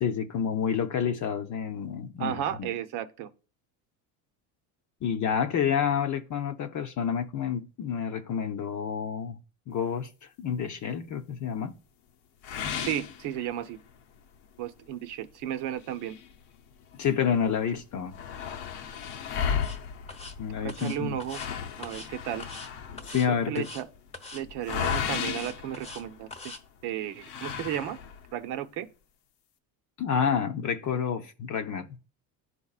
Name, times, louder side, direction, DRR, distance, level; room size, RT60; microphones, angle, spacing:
voice 1, 0.0-2.7 5.0-9.4 9.7-11.8 16.9-18.2 20.4-21.2 23.0-23.7 30.0-32.0, left 7 dB, 45° left, 0.7 m, -29 dB
voice 2, 2.2-3.3 12.8-13.8 14.6-16.2 20.6-21.4 21.8-22.5 23.5-23.9 24.3-26.3 26.8-28.0 28.3-28.9, right 11 dB, 70° right, 0.9 m, -33 dB
sound 1, 12.4-13.9 14.3-14.4 14.9-15.0 15.8-17.1 17.4-17.5 17.7-26.5 27.2-28.3, left 7 dB, 75° left, 0.8 m, -35 dB
sound 2, 18.9-19.2 19.5-19.8 20.1-20.3 20.7-21.5 21.8-22.1 22.4-22.7 23.0-23.3 23.5-23.8 24.1-24.4 24.7-26.0 26.3-26.6, left 3 dB, 15° left, 0.9 m, -43 dB
11.0 x 4.1 x 2.4 m
supercardioid pair, 95°, 41 cm